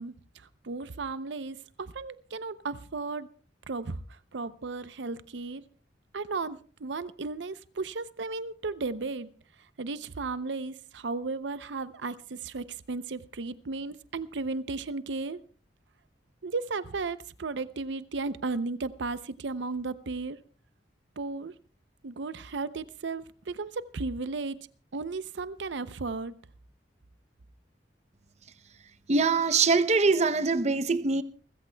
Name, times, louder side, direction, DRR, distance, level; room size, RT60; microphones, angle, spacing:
voice 1, 0.0-3.3 3.7-5.7 6.1-9.3 9.8-15.4 16.4-20.4 21.2-21.5 22.0-24.6 24.9-26.3, right 3 dB, 85° right, 0.6 m, -35 dB
voice 2, 29.1-31.2, right 4 dB, 40° right, 0.7 m, -23 dB
29.0 x 14.5 x 2.3 m
head